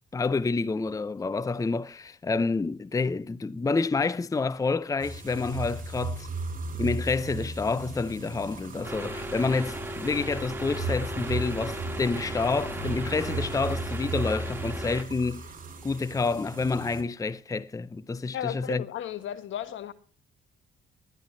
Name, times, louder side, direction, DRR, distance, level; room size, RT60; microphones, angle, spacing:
voice 1, 0.1-6.3 6.8-15.5 15.8-18.8, left 4 dB, 15° left, 0.6 m, -28 dB
sound 1, 5.0-17.0, right 3 dB, 45° right, 4.3 m, -36 dB
sound 2, 8.8-15.0, right 1 dB, 10° right, 2.7 m, -36 dB
voice 2, 18.3-19.9, left 10 dB, 75° left, 1.6 m, -34 dB
19.5 x 12.0 x 2.7 m
cardioid pair, 90°, 20 cm